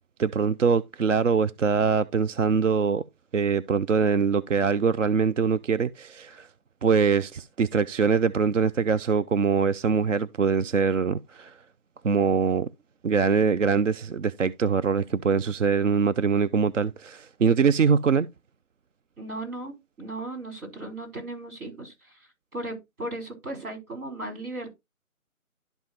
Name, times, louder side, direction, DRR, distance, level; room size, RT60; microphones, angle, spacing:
voice 1, 0.2-3.0 3.3-6.5 6.8-11.6 12.0-12.7 13.0-18.3, right 5 dB, 60° right, 0.5 m, -23 dB
voice 2, 19.2-24.8, right 2 dB, 80° right, 5.0 m, -37 dB
11.5 x 5.4 x 2.9 m
figure-of-eight pair, 170°, 43 cm